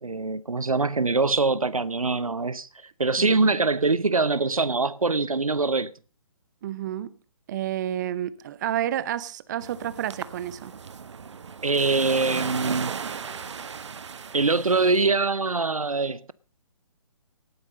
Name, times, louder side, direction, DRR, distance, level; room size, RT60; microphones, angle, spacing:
voice 1, 0.0-2.7 3.0-5.9 11.6-12.9 14.3-16.3, right 3 dB, 80° right, 0.9 m, -23 dB
voice 2, 3.2-3.6 6.6-7.1 7.5-10.7, right 11 dB, 35° right, 0.7 m, -30 dB
sound 1, 9.6-15.1, right 6 dB, 55° right, 1.1 m, -36 dB
18.0 x 9.6 x 5.1 m
figure-of-eight pair, 135°, 18 cm